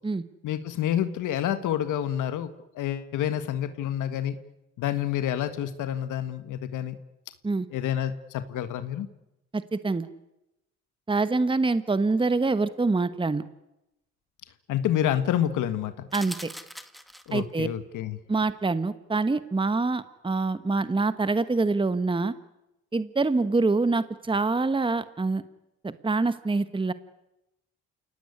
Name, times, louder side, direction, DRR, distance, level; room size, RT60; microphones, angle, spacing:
voice 1, 0.4-2.5 2.7-4.3 4.8-7.0 7.7-9.1 14.7-16.1 17.3-18.2, left 10 dB, 85° left, 11 dB, 1.7 m, -28 dB
voice 2, 9.5-10.1 11.1-13.4 16.1-16.5 17.3-17.7 18.3-22.3 22.9-25.4 25.8-26.9, right 3 dB, 15° right, 13 dB, 1.2 m, -25 dB
sound 1, 16.1-17.6, equal, ahead, 1.8 m, -41 dB
28.5 x 18.0 x 9.8 m, 0.92 s
cardioid pair, 90°, 30 cm